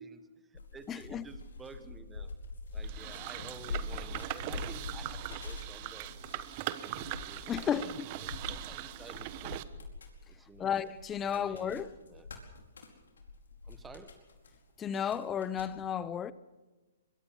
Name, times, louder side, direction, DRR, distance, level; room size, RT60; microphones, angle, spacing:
voice 1, 0.0-2.3 2.7-6.4 6.9-9.8 10.3-10.7 11.3-12.3 13.6-14.3, right 4 dB, 10° right, 1.5 m, -52 dB
sound 1, 0.5-14.6 14.9-15.6, left 3 dB, 90° left, 4.7 m, -44 dB
voice 2, 0.9-1.3 7.5-8.1 10.6-11.9 14.8-16.3, left 8 dB, 15° left, 0.7 m, -33 dB
sound 2, 2.8-9.6, right 14 dB, 40° right, 1.2 m, -41 dB
23.5 x 22.0 x 5.8 m
hypercardioid pair, 140°, 0 cm